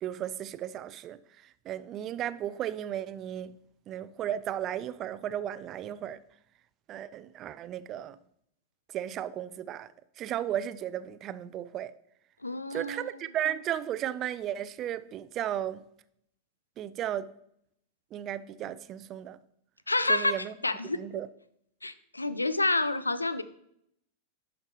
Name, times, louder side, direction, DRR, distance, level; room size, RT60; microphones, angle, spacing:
voice 1, 0.0-3.6 3.9-6.2 6.9-8.2 8.9-9.9 10.2-11.9 12.7-15.8 16.8-17.3 18.1-19.4 20.1-20.5 20.9-21.3, right 11 dB, 35° right, 0.4 m, -35 dB
voice 2, 12.4-13.1 19.9-21.0 21.8-23.4, left 2 dB, 80° left, 0.4 m, -28 dB
11.0 x 5.2 x 3.0 m
figure-of-eight pair, 90°, 0 cm